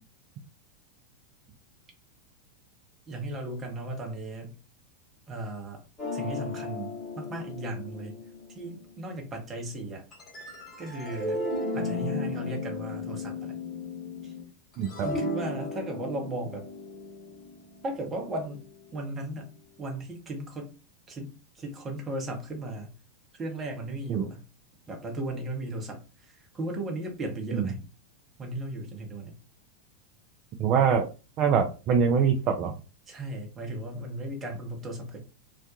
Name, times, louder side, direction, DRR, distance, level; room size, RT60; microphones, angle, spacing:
voice 1, 3.1-4.6 5.3-5.8 6.1-8.2 8.5-10.0 10.8-11.5 11.7-13.6 14.2-14.3 15.0-16.6 17.8-18.6 18.9-19.5 19.8-20.7 21.1-23.0 23.3-24.4 24.9-27.9 28.4-29.4 33.1-35.2, right 1 dB, 20° right, 2 dB, 0.8 m, -36 dB
sound 1, 6.0-9.1 10.1-14.4 14.7-18.9, left 2 dB, 20° left, 1.1 m, -35 dB
voice 2, 14.8-15.1 24.1-24.2 27.5-27.7 30.6-31.1 31.4-32.7, right 6 dB, 35° right, 4 dB, 0.3 m, -24 dB
2.4 x 2.2 x 2.6 m, 0.32 s
figure-of-eight pair, 90°, 0 cm